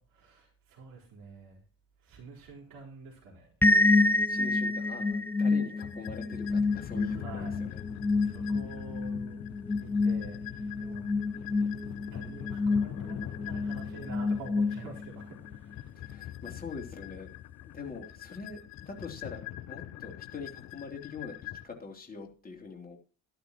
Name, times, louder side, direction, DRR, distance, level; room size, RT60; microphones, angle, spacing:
voice 1, 0.0-1.6 2.0-3.5 7.0-7.6 8.2-9.4 9.8-11.1 12.1-16.0, right 4 dB, 55° right, -3 dB, 4.4 m, -48 dB
sound 1, 3.6-15.2, left 3 dB, 5° left, 0.4 m, -28 dB
voice 2, 4.3-7.8 16.0-17.3 17.7-23.0, left 4 dB, 20° left, 1 dB, 3.2 m, -43 dB
sound 2, 5.8-21.6, left 12 dB, 45° left, 0.8 m, -43 dB
12.5 x 12.0 x 3.0 m, 0.37 s
figure-of-eight pair, 60°, 41 cm